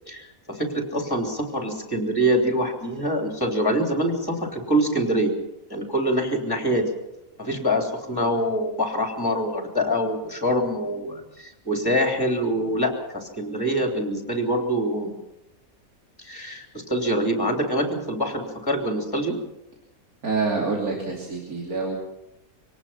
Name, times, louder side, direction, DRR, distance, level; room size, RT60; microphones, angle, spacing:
voice 1, 0.1-5.4 5.7-6.9 7.4-15.1 16.2-19.4, equal, 15° left, 2 dB, 3.6 m, -25 dB
voice 2, 20.2-22.0, right 4 dB, 85° right, -1 dB, 3.5 m, -26 dB
25.0 x 18.5 x 5.8 m, 0.89 s
omnidirectional pair, 1.5 m